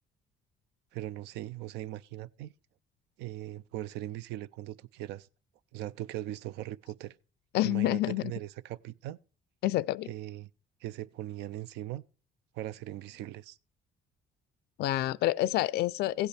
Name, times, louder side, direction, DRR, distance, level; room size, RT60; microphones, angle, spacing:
voice 1, 0.9-2.5 3.2-5.3 5.7-7.1 7.6-9.2 10.1-10.5 10.8-12.0 12.5-13.6, right 14 dB, 85° right, 0.5 m, -39 dB
voice 2, 7.5-8.3 9.6-10.1 14.8-16.3, left 15 dB, 75° left, 0.4 m, -28 dB
15.5 x 8.0 x 3.3 m
cardioid pair, 110°, 17 cm